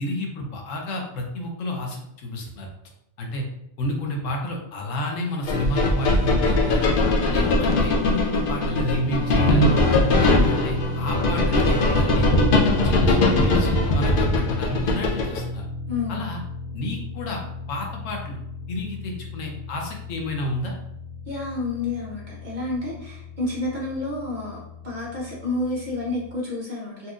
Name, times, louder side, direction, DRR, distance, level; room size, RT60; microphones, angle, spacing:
voice 1, 0.0-2.7 3.2-3.4 3.8-6.9 7.3-9.8 10.2-15.7 16.1-16.4 16.7-17.4 17.7-18.4 18.7-20.7, left 1 dB, 70° left, 1 dB, 1.0 m, -31 dB
sound 1, 5.5-15.4, left 2 dB, 55° left, 0.6 m, -20 dB
sound 2, 8.6-26.3, left 2 dB, 80° right, 1.7 m, -33 dB
voice 2, 15.9-16.2 21.3-27.1, left 2 dB, 40° right, -5 dB, 0.8 m, -30 dB
4.1 x 2.5 x 2.4 m, 0.77 s
omnidirectional pair, 1.4 m